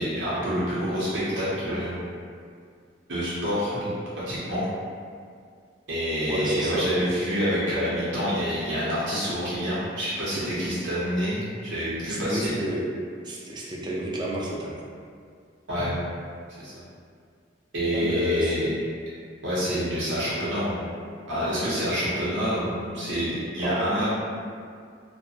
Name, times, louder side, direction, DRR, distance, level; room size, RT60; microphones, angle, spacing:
voice 1, 0.0-2.0 3.1-3.9 4.3-4.7 5.9-12.5 15.7-16.0 16.6-16.7 17.7-18.7 19.4-20.9 21.3-24.1, equal, 85° right, -10 dB, 0.8 m, -27 dB
voice 2, 6.3-6.9 12.0-12.9 13.2-14.8 17.9-18.6 23.6-24.1, equal, 25° right, -4 dB, 0.4 m, -30 dB
2.6 x 2.2 x 2.7 m, 2.2 s
head